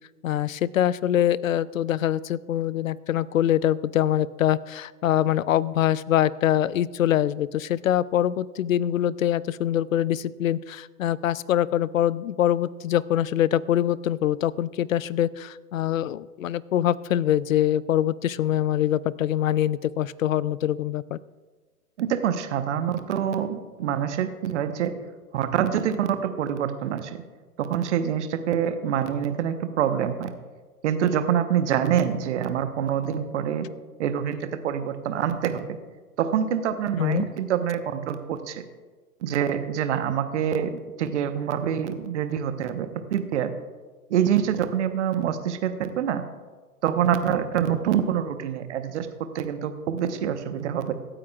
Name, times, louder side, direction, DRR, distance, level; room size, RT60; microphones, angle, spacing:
voice 1, 0.2-21.2 37.0-37.3, left 11 dB, 60° left, 21 dB, 0.5 m, -24 dB
voice 2, 22.0-24.9 25.3-27.2 27.6-30.3 30.8-33.7 34.0-35.6 36.2-38.6 39.2-40.7 41.0-43.5 44.1-46.2 46.8-49.1 49.3-50.9, right 9 dB, 50° right, 9 dB, 1.1 m, -26 dB
24.0 x 8.8 x 2.4 m, 1.4 s
figure-of-eight pair, 110°, 45 cm